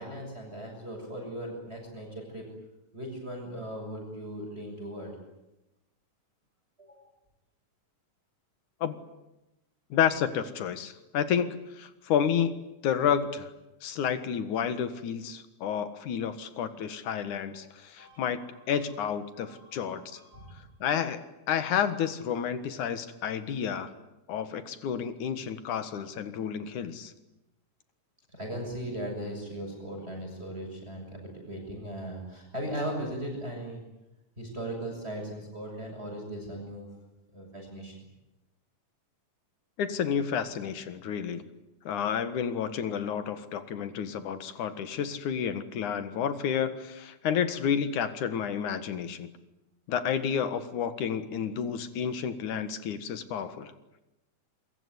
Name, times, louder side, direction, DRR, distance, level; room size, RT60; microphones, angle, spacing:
voice 1, 0.0-2.5 2.9-5.1 6.8-7.0 18.0-18.7 19.3-20.6 28.3-33.8 34.4-36.9 37.3-37.9, right 1 dB, 15° right, 0 dB, 7.1 m, -38 dB
voice 2, 9.9-11.5 11.7-12.6 12.8-13.5 13.8-18.4 18.7-20.2 20.8-21.2 21.5-23.9 24.3-27.1 39.8-41.4 41.8-49.3 49.9-53.7, left 8 dB, 65° left, 11 dB, 3.0 m, -30 dB
26.5 x 23.0 x 9.7 m, 0.96 s
omnidirectional pair, 3.9 m